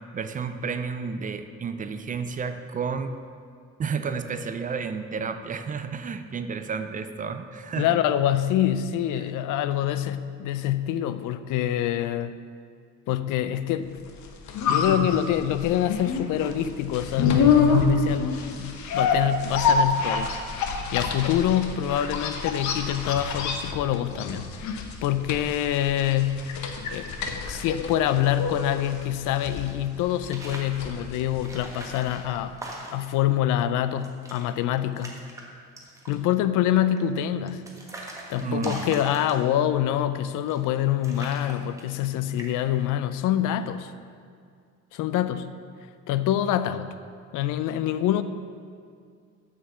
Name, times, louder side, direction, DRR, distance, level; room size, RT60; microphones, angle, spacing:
voice 1, 0.1-3.2 3.8-8.0 38.4-39.0, right 5 dB, 25° right, 9 dB, 0.4 m, -31 dB
voice 2, 7.8-12.4 13.1-14.0 14.7-20.3 20.9-26.5 26.9-27.1 27.4-32.6 32.9-35.2 36.1-37.6 38.3-43.9 44.9-45.5 46.1-46.9 47.3-48.2, left 11 dB, 85° left, 12 dB, 0.6 m, -25 dB
sound 1, 14.1-32.1 32.4-32.5, left 5 dB, 70° left, 1.0 m, -27 dB
sound 2, 28.4-29.7 30.2-30.8 31.4-33.2 33.6-33.7 33.9-34.4 34.8-35.4 35.8-36.3 37.0-39.7 40.4-40.8 41.0-42.1 42.4-42.8, right 1 dB, 10° right, 1.3 m, -41 dB
7.3 x 7.0 x 6.8 m, 2.2 s
cardioid pair, 145°, 30 cm